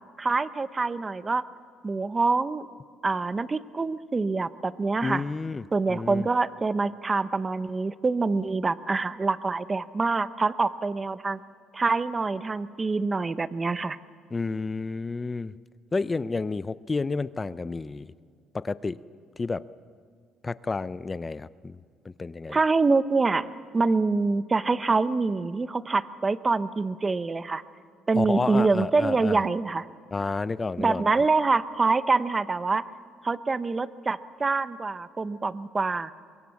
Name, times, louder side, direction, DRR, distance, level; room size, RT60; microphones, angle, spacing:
voice 1, 0.2-1.4 1.8-2.7 3.0-5.2 5.7-11.4 11.7-14.0 22.5-23.5 23.7-27.6 28.1-29.9 30.8-32.8 33.2-36.1, right 3 dB, 20° right, 14 dB, 0.8 m, -25 dB
voice 2, 5.0-6.3 14.3-15.5 15.9-18.1 18.5-19.0 19.4-19.6 20.4-21.8 22.0-22.6 28.1-29.4 30.1-31.0, left 3 dB, 20° left, 16 dB, 0.6 m, -30 dB
24.5 x 22.5 x 7.2 m, 2.1 s
cardioid pair, 115°, 0 cm